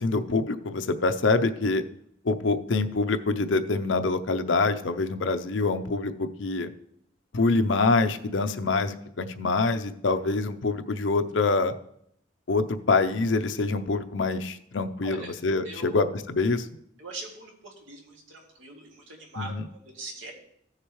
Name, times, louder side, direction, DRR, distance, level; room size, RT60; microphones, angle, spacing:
voice 1, 0.0-1.8 2.2-6.7 7.3-11.7 12.5-16.7 19.4-19.7, left 3 dB, 75° left, 9 dB, 0.6 m, -25 dB
voice 2, 15.0-15.3 15.6-16.0 17.0-20.3, right 2 dB, 85° right, -1 dB, 2.5 m, -41 dB
15.5 x 6.6 x 3.2 m, 0.73 s
head